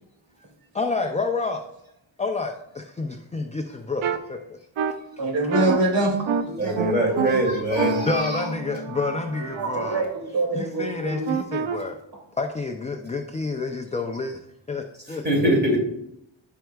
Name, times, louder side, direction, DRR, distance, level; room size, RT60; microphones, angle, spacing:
voice 1, 0.7-1.6 2.2-4.4 8.1-10.0 10.5-11.9 12.4-14.4 14.7-15.5, left 3 dB, 15° left, 4 dB, 0.3 m, -29 dB
sound 1, 4.0-4.2 4.8-4.9 5.5-5.8 6.3-6.4 6.8-7.3 7.8-10.0 11.3-11.8, right 6 dB, 90° right, 0.7 m, -27 dB
voice 2, 5.1-6.2 6.6-7.4 9.4-11.2, right 2 dB, 65° right, -1 dB, 2.7 m, -25 dB
voice 3, 6.6-8.5 15.2-15.8, right 1 dB, 20° right, -2 dB, 2.5 m, -23 dB
13.5 x 4.6 x 2.3 m, 0.79 s
wide cardioid pair, 135°, 47 cm